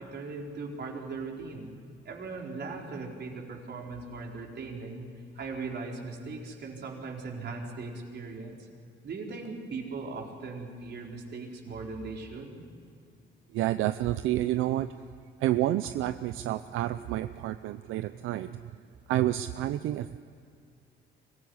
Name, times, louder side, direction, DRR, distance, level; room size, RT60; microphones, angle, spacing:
voice 1, 0.0-1.7 2.0-5.1 5.3-8.7 9.0-12.6, right 4 dB, 60° right, 0 dB, 4.4 m, -39 dB
voice 2, 13.5-14.9 15.4-18.6 19.1-20.2, right 14 dB, 90° right, 11 dB, 0.6 m, -29 dB
24.5 x 16.0 x 9.7 m, 2.5 s
cardioid pair, 90°, 20 cm